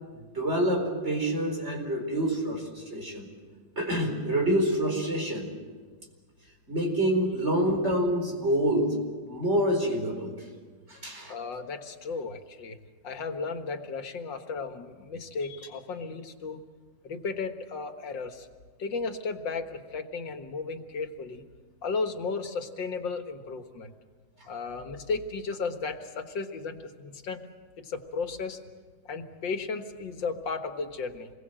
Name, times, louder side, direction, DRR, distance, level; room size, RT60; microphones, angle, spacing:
voice 1, 0.1-3.3 3.8-5.5 6.7-9.0 9.2-10.4 10.9-11.3, right 1 dB, 35° right, 1 dB, 4.9 m, -27 dB
voice 2, 11.3-12.8 13.0-16.6 17.0-18.5 18.8-21.4 21.8-23.9 24.5-27.4 27.8-28.6 29.1-31.3, left 4 dB, 85° left, 6 dB, 2.3 m, -34 dB
28.0 x 22.0 x 7.7 m, 1.5 s
omnidirectional pair, 2.0 m